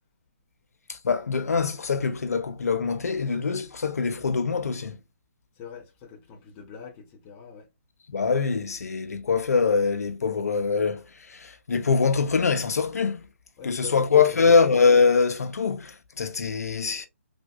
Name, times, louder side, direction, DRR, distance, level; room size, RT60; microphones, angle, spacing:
voice 1, 0.9-5.0 8.1-13.2 13.6-17.1, left 5 dB, 80° left, 0.5 m, -23 dB
voice 2, 5.6-7.7 13.6-14.4, left 6 dB, 20° left, 0.6 m, -44 dB
3.3 x 2.5 x 2.3 m
hypercardioid pair, 150°, 8 cm